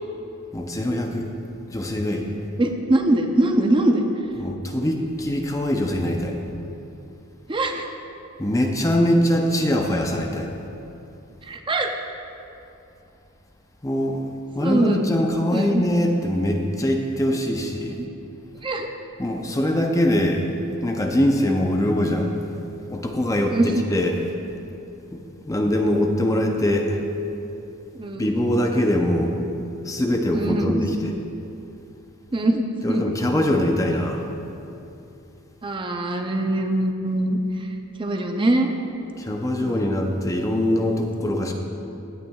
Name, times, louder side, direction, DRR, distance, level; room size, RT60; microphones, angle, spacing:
voice 1, 0.5-1.3 1.7-2.3 4.4-6.4 8.4-10.5 13.8-14.2 14.5-18.0 19.2-20.4 20.8-22.3 22.9-24.2 25.1-27.0 28.2-29.4 29.8-31.2 32.8-34.2 39.2-41.5, left 1 dB, 15° left, 2 dB, 0.6 m, -22 dB
voice 2, 2.6-4.0 7.5-7.9 11.4-11.9 14.6-15.1 15.5-15.8 17.9-18.1 18.6-18.9 23.5-23.9 27.9-28.3 30.3-30.8 32.3-33.1 35.6-37.7 38.0-38.7 39.6-39.8, right 1 dB, 25° right, 4 dB, 0.5 m, -22 dB
16.0 x 9.2 x 2.3 m, 2.8 s
head